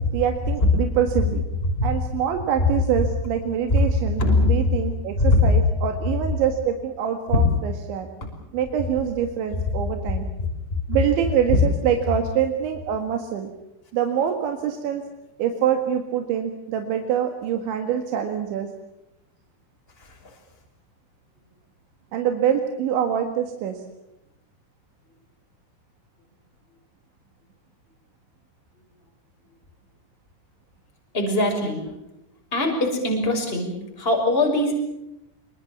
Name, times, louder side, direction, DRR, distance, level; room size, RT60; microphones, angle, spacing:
voice 1, 0.1-1.4 1.8-8.1 8.5-10.3 10.9-13.5 13.9-15.0 15.4-18.7 22.1-23.8, right 9 dB, 70° right, 5 dB, 4.0 m, -25 dB
voice 2, 4.2-4.5 5.2-5.5 7.3-7.4 20.0-20.2 31.1-31.9 32.5-34.8, left 2 dB, 10° left, 2 dB, 5.7 m, -21 dB
26.5 x 23.5 x 7.1 m, 0.89 s
omnidirectional pair, 5.6 m